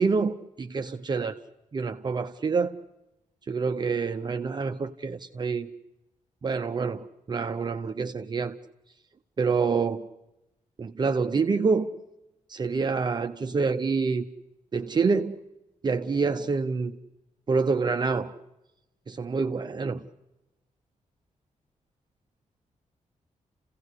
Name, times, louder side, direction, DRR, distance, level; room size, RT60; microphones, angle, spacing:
voice 1, 0.0-1.4 1.7-2.7 3.5-5.7 6.4-8.6 9.4-10.1 10.8-11.9 12.5-14.3 14.7-15.4 15.8-17.0 17.5-18.3 19.1-20.0, right 4 dB, 35° right, 6 dB, 0.8 m, -27 dB
29.5 x 16.5 x 8.2 m, 0.95 s
wide cardioid pair, 165°, 13 cm